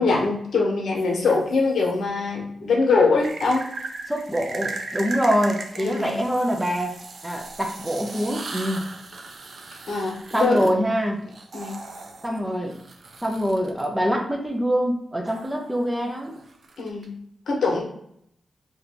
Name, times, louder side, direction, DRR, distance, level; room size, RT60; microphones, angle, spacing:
voice 1, 0.0-3.7 5.8-6.3 9.9-10.7 11.5-11.8 16.8-17.1 17.5-17.8, left 3 dB, 80° left, 0 dB, 0.9 m, -23 dB
sound 1, 1.0-1.9 3.2-13.8 15.2-17.1, right 3 dB, 60° right, 0.5 m, -38 dB
voice 2, 4.1-6.9 7.2-8.8 10.3-11.2 12.2-12.8 13.2-16.4, equal, 10° right, 1 dB, 0.7 m, -24 dB
2.8 x 2.5 x 3.4 m, 0.71 s
cardioid pair, 70°, 0 cm